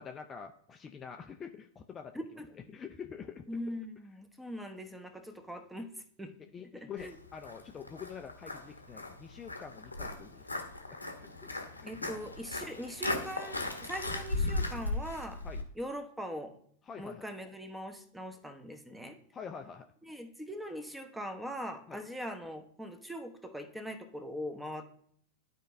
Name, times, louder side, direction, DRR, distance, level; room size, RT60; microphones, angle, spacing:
voice 1, 0.0-2.2 2.7-3.5 6.5-10.6 10.9-12.2 15.4-15.6 16.8-17.2 19.3-19.9 21.9-22.0, left 6 dB, 20° left, 5 dB, 0.4 m, -46 dB
voice 2, 2.1-2.5 3.5-5.9 6.2-6.3 6.7-7.2 11.9-15.4 15.8-16.5 17.0-19.2 20.0-24.8, equal, 5° right, 7 dB, 0.9 m, -41 dB
Walk footsteps, 7.0-15.6, left 2 dB, 85° left, 0.9 m, -37 dB
12.0 x 4.5 x 2.6 m, 0.63 s
figure-of-eight pair, 90°, 0 cm